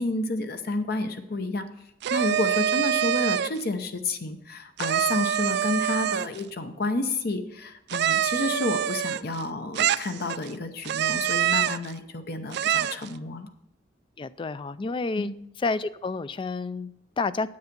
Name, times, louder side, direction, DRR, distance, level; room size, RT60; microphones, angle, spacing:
voice 1, 0.0-1.7 2.1-13.5 15.2-15.3, left 2 dB, 55° left, 7 dB, 0.8 m, -30 dB
sound 1, 2.0-3.6 4.8-6.4 7.9-9.4 9.8-10.5 10.8-11.9 12.5-13.1, right 10 dB, 65° right, 0.3 m, -25 dB
voice 2, 14.2-15.3 15.6-17.5, left 3 dB, 25° left, 16 dB, 0.3 m, -30 dB
9.6 x 8.0 x 5.2 m, 0.78 s
head